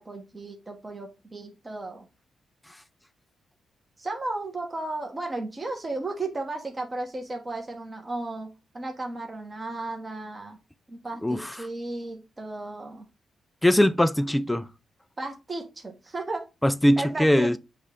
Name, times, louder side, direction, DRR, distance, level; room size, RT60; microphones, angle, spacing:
voice 1, 0.0-2.1 4.0-10.6 10.9-13.1 15.2-16.4 17.0-17.6, right 2 dB, 30° right, 1.1 m, -34 dB
voice 2, 11.2-11.5 13.6-14.7 16.6-17.6, left 1 dB, 10° left, 0.3 m, -21 dB
6.2 x 2.5 x 3.5 m
cardioid pair, 80°, 0 cm